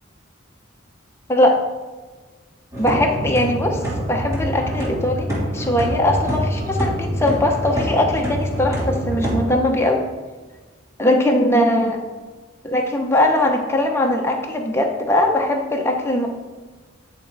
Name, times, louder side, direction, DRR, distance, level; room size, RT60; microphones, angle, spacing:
sound 1, 2.7-9.5, equal, 15° right, 1.8 m, -25 dB
voice 1, 2.8-3.8 4.1-10.0 11.0-12.0 12.6-16.3, left 1 dB, 15° left, 2 dB, 0.8 m, -20 dB
9.5 x 4.4 x 4.7 m, 1.3 s
head